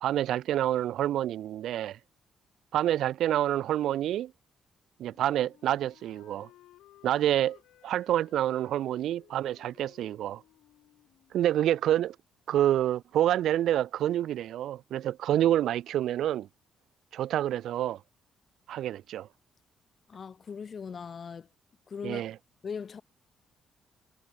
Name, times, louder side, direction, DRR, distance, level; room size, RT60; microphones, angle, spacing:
voice 1, 0.0-2.0 2.7-4.3 5.0-6.5 7.0-7.6 7.8-10.4 11.3-12.2 12.5-16.5 17.1-18.0 18.7-19.3 22.0-22.3, right 12 dB, 75° right, 0.4 m, -27 dB
Wind instrument woodwind instrument, 5.0-11.8, left 14 dB, 85° left, 3.2 m, -59 dB
voice 2, 20.1-21.5 21.9-22.2 22.6-23.0, left 6 dB, 45° left, 1.3 m, -39 dB
cardioid pair, 90°, 0 cm